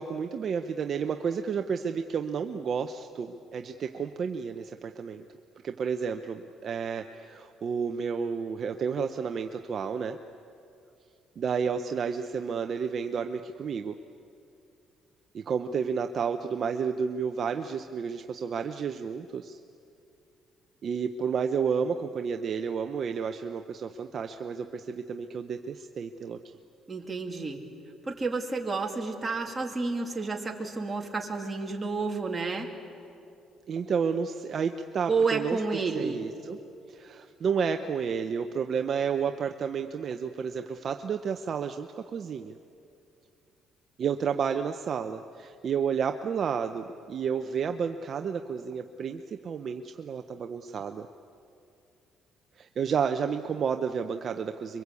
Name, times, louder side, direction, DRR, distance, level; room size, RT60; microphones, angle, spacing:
voice 1, 0.0-5.3 5.6-10.2 11.4-13.9 15.3-19.6 20.8-26.4 33.7-35.6 35.9-36.6 36.9-42.5 44.0-51.1 52.6-54.8, right 6 dB, 40° right, 7 dB, 0.8 m, -31 dB
voice 2, 26.9-27.6 28.1-32.7 35.1-36.2, right 4 dB, 15° right, 1 dB, 2.6 m, -30 dB
25.5 x 23.5 x 8.4 m, 2.6 s
cardioid pair, 135°, 0 cm